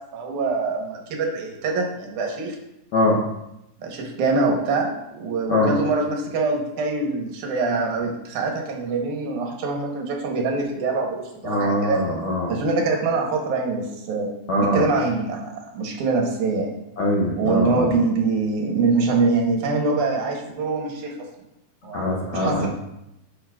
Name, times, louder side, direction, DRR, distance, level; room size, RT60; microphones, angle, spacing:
voice 1, 0.0-2.6 3.8-12.0 12.5-14.3 14.6-16.7 17.4-21.1 21.8-22.0 22.3-22.7, right 3 dB, 80° right, 1 dB, 2.5 m, -24 dB
voice 2, 2.9-3.2 5.5-5.7 11.4-12.5 14.5-14.8 17.0-17.9 21.9-22.7, left 1 dB, 70° left, -4 dB, 1.1 m, -22 dB
8.5 x 6.1 x 2.4 m, 0.87 s
omnidirectional pair, 3.5 m